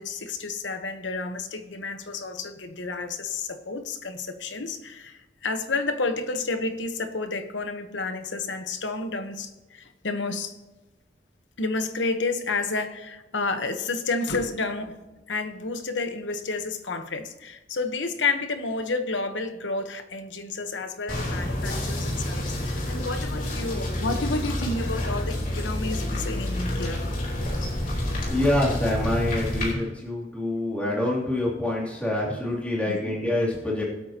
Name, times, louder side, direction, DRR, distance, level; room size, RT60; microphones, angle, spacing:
voice 1, 0.0-10.5 11.6-15.0 15.3-27.0 32.9-33.1, left 3 dB, 80° left, 8 dB, 1.1 m, -30 dB
sound 1, 21.1-29.7, left 1 dB, 50° left, 3.5 m, -29 dB
voice 2, 28.3-34.0, left 1 dB, 5° left, -6 dB, 3.1 m, -26 dB
22.5 x 8.5 x 3.0 m, 1.1 s
head